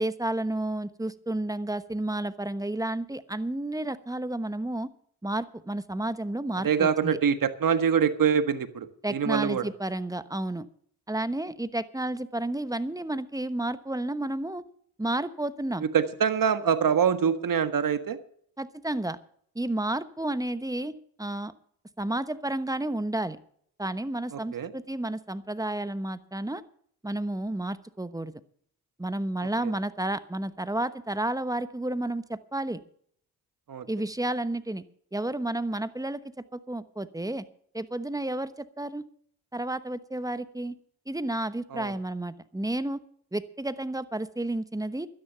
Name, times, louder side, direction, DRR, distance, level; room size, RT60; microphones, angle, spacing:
voice 1, 0.0-4.9 5.2-7.2 9.0-10.7 11.1-14.6 15.0-15.8 18.6-19.2 19.5-21.5 22.0-23.4 23.8-26.6 27.0-28.4 29.0-32.8 33.9-34.8 35.1-37.5 37.7-39.0 39.5-40.8 41.1-43.0 43.3-45.1, right 1 dB, 10° right, 13 dB, 1.0 m, -31 dB
voice 2, 6.6-9.7 15.9-18.2 24.3-24.7 29.6-29.7 33.7-33.9 41.7-41.9, right 7 dB, 55° right, 11 dB, 1.6 m, -25 dB
12.5 x 10.5 x 6.9 m, 0.62 s
cardioid pair, 65°, 41 cm